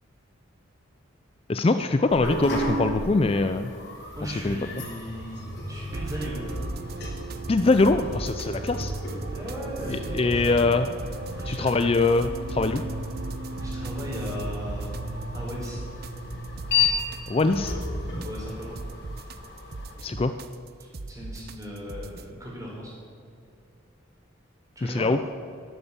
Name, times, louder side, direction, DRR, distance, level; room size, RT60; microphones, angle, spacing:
voice 1, 1.5-3.7 4.4-4.6 7.5-8.9 9.9-10.9 11.5-12.8 17.3-17.7 20.0-20.3 24.8-25.2, left 3 dB, 30° left, 9 dB, 0.4 m, -23 dB
sound 1, 2.1-19.9, left 3 dB, 55° left, 3.4 m, -34 dB
voice 2, 4.1-5.4 5.7-6.5 8.4-8.7 9.3-10.6 11.4-11.9 13.6-14.9 15.3-15.8 18.2-18.8 20.8-22.9 24.7-25.1, equal, 15° right, -4 dB, 4.4 m, -37 dB
sound 2, 5.9-22.3, right 2 dB, 50° right, 0.6 m, -36 dB
12.5 x 11.0 x 7.1 m, 2.5 s
head